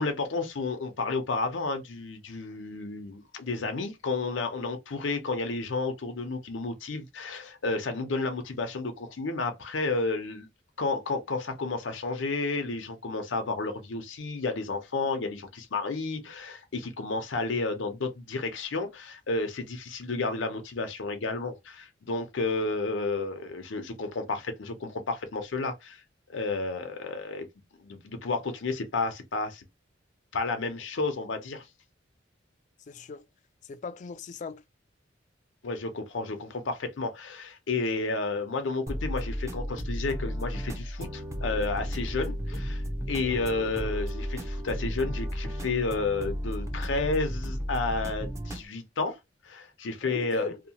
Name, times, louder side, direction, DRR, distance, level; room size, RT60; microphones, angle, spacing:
voice 1, 0.0-10.5 10.8-26.0 26.3-27.5 27.8-29.6 30.3-31.7 35.6-42.8 43.1-49.2 49.4-50.5, left 3 dB, 90° left, 0.6 m, -31 dB
voice 2, 32.9-33.3 33.6-34.6 43.2-43.5 50.0-50.6, left 4 dB, 40° left, 0.3 m, -38 dB
sound 1, 38.9-48.6, equal, 15° right, 0.5 m, -33 dB
2.8 x 2.1 x 2.7 m
head